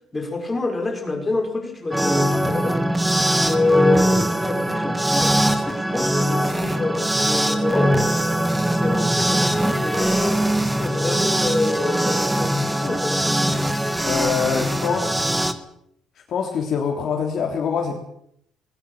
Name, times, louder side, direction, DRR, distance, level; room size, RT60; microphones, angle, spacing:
voice 1, 0.1-2.8 3.4-7.9 8.7-13.2, left 3 dB, 20° left, 3 dB, 5.8 m, -26 dB
sound 1, 1.9-15.5, right 1 dB, 10° right, 1.7 m, -21 dB
voice 2, 14.0-15.2 16.3-17.9, left 6 dB, 50° left, 1 dB, 3.5 m, -24 dB
20.0 x 19.5 x 7.4 m, 0.74 s
cardioid pair, 135°, 0 cm